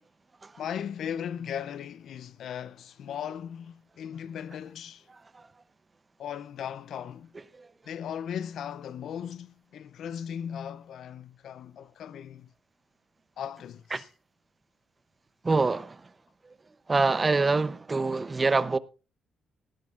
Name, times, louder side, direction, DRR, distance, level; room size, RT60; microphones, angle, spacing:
voice 1, 0.6-5.1 6.2-7.3 7.9-12.5 13.4-14.1, left 8 dB, 70° left, 0.5 m, -37 dB
voice 2, 15.4-16.1 16.4-16.5 16.9-18.8, right 3 dB, 25° right, 0.7 m, -25 dB
18.0 x 12.5 x 2.5 m
cardioid pair, 90°, 0 cm